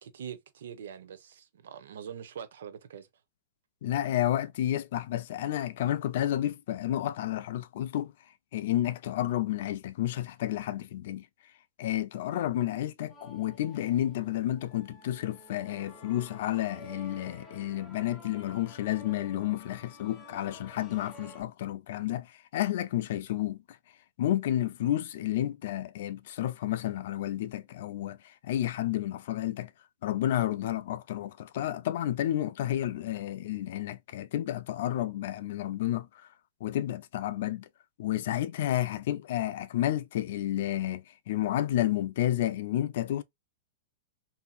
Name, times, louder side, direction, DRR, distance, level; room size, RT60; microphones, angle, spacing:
voice 1, 0.0-3.1, right 8 dB, 80° right, 0.6 m, -43 dB
voice 2, 3.8-8.1 8.5-11.3 11.8-23.6 24.2-29.7 30.0-36.1 36.6-37.7 38.0-43.2, left 13 dB, 65° left, 0.3 m, -31 dB
sound 1, 13.1-21.4, left 1 dB, 10° left, 0.8 m, -51 dB
2.7 x 2.6 x 2.3 m
hypercardioid pair, 140°, 0 cm